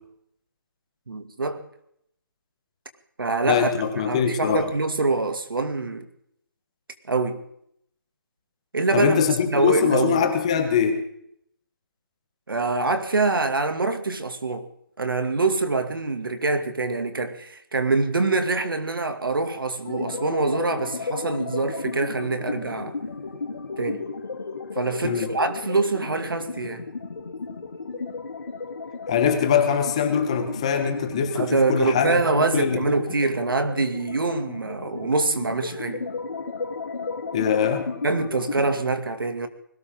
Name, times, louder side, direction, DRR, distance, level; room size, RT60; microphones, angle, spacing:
voice 1, 1.1-1.6 3.2-3.7 4.0-6.1 7.1-7.4 8.7-9.2 9.5-10.3 12.5-14.7 15.0-23.0 23.8-24.0 24.7-26.9 31.3-36.0 38.0-39.5, right 3 dB, 75° right, 2.6 m, -25 dB
voice 2, 3.4-4.6 8.9-11.0 25.0-25.3 29.1-32.9 37.3-37.9, left 7 dB, 15° left, 1.3 m, -22 dB
sound 1, 19.8-38.8, left 4 dB, 60° left, 3.7 m, -34 dB
20.5 x 17.5 x 3.9 m
hypercardioid pair, 175°, 12 cm